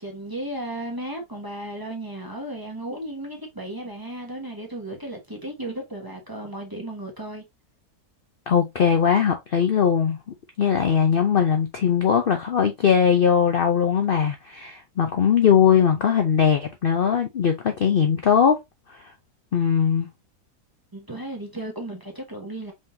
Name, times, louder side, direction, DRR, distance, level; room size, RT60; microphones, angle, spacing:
voice 1, 0.0-7.4 20.9-22.7, right 1 dB, 15° right, 1.0 m, -34 dB
voice 2, 8.5-10.2 10.6-18.6 18.9-19.1 19.5-20.1, left 7 dB, 65° left, 0.5 m, -20 dB
5.2 x 3.8 x 2.6 m
omnidirectional pair, 1.8 m